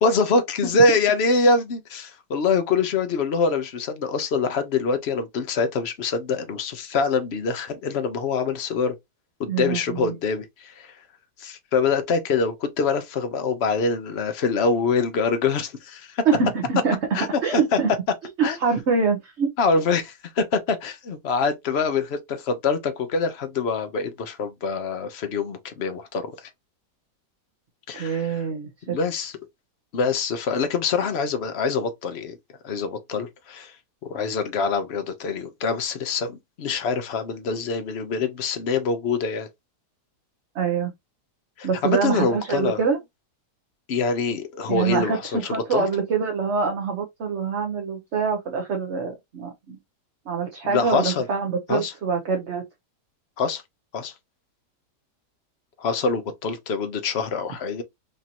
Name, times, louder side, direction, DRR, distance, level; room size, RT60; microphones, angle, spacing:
voice 1, 0.0-8.9 9.4-11.0 11.4-16.2 17.1-17.3 17.5-17.8 18.4-18.6 19.6-26.5 27.9-28.4 28.9-29.3 29.9-32.4 32.6-33.7 34.1-39.5 41.6-42.8 43.9-45.9 50.6-51.3 51.7-51.9 53.4-53.6 53.9-54.1 55.8-57.8, left 4 dB, 50° left, 0.8 m, -24 dB
voice 2, 9.5-10.1 16.2-17.0 17.4-17.9 18.4-19.5 27.9-29.0 40.5-40.9 41.6-43.0 44.7-49.8 50.3-52.6, right 5 dB, 50° right, 1.0 m, -25 dB
5.2 x 2.7 x 2.8 m
omnidirectional pair, 1.8 m